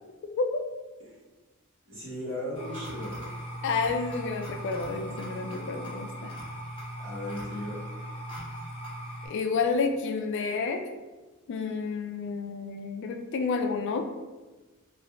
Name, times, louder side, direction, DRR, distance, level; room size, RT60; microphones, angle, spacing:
voice 1, 1.9-3.4 7.0-7.8, left 1 dB, 60° right, -8 dB, 1.5 m, -36 dB
sound 1, 2.5-9.3, equal, 25° left, 0.7 m, -39 dB
voice 2, 3.6-6.3 9.2-10.8 11.5-14.0, left 4 dB, 55° left, 5 dB, 0.3 m, -30 dB
2.7 x 2.5 x 3.2 m, 1.2 s
head